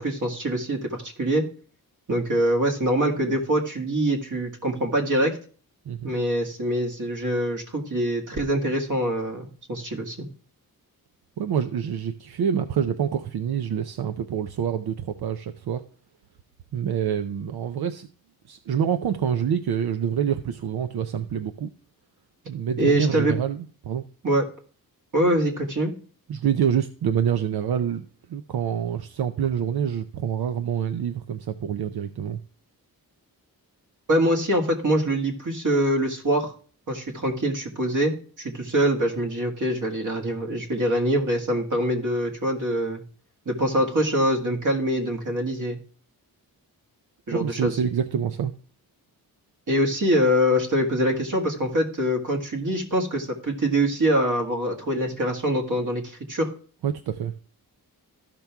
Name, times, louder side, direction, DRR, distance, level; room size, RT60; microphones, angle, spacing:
voice 1, 0.0-1.4 2.1-5.4 6.0-10.3 22.8-23.3 24.2-24.4 25.1-25.9 34.1-36.5 36.9-43.0 43.5-45.8 47.3-47.8 49.7-56.5, right 1 dB, 55° right, 2 dB, 1.9 m, -24 dB
voice 2, 11.4-15.8 16.7-18.1 18.5-21.7 22.5-24.0 26.3-32.4 47.3-48.5 56.8-57.3, right 8 dB, 85° right, 8 dB, 0.6 m, -26 dB
13.5 x 6.0 x 3.4 m, 0.43 s
wide cardioid pair, 110°, 37 cm